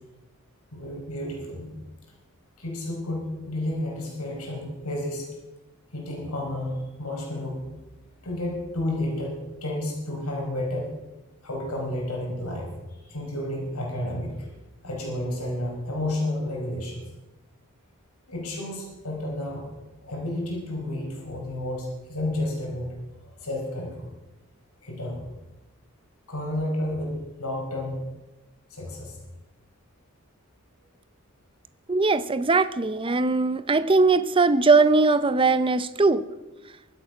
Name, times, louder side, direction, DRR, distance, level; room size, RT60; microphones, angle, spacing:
voice 1, 0.7-1.7 2.6-5.3 5.9-7.7 8.2-10.9 11.4-12.7 13.0-14.5 14.8-17.0 18.3-19.7 20.0-22.9 23.2-24.1 24.8-25.3 26.3-28.0 28.7-29.2, left 1 dB, 80° left, 4.9 m, -31 dB
voice 2, 31.9-36.3, right 3 dB, 25° right, 0.6 m, -20 dB
24.0 x 8.3 x 6.0 m
head